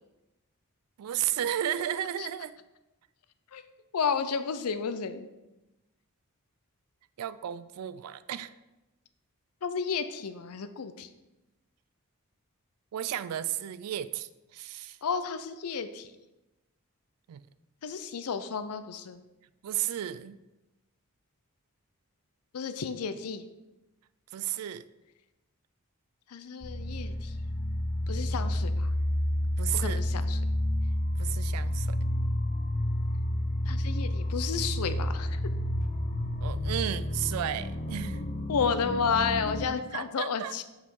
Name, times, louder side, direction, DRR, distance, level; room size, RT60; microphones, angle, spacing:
voice 1, 1.0-2.6 7.2-8.5 12.9-15.0 17.3-17.4 19.6-20.4 24.3-24.8 29.6-30.0 31.2-32.0 36.4-38.2 39.9-40.6, right 11 dB, 85° right, 15 dB, 0.3 m, -33 dB
voice 2, 3.9-5.3 9.6-11.1 15.0-16.1 17.8-19.2 22.5-23.5 26.3-27.4 28.1-28.9 29.7-30.4 33.6-35.4 38.5-40.6, left 6 dB, 85° left, 11 dB, 0.5 m, -32 dB
sound 1, 26.6-39.7, left 1 dB, 35° left, 0.5 m, -30 dB
5.5 x 4.9 x 4.6 m, 1.0 s
head